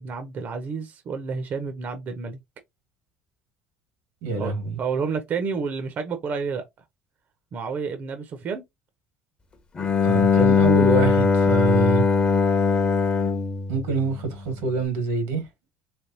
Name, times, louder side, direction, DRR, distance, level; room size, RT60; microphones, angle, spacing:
voice 1, 0.0-2.4 4.4-4.5 4.8-6.6 7.5-8.6, right 5 dB, 40° right, 0.6 m, -30 dB
voice 2, 4.2-4.8 10.0-12.0 13.7-15.4, right 3 dB, 90° right, 1.7 m, -25 dB
Bowed string instrument, 9.8-14.6, left 5 dB, 25° left, 0.7 m, -20 dB
3.3 x 3.3 x 2.8 m
cardioid pair, 140°, 4 cm